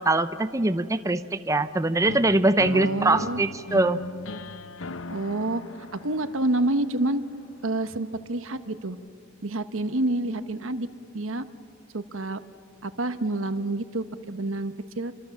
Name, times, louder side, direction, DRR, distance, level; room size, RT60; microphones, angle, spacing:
voice 1, 0.0-4.0, right 2 dB, 15° right, 10 dB, 0.7 m, -23 dB
sound 1, 2.1-8.0, left 2 dB, 80° left, 0.8 m, -39 dB
voice 2, 2.7-3.4 5.1-5.6 5.9-7.2 7.6-9.0 9.4-10.9 11.1-11.4 11.9-12.4 12.8-15.1, right 2 dB, 85° right, 10 dB, 1.3 m, -28 dB
28.5 x 24.5 x 7.2 m, 2.6 s
head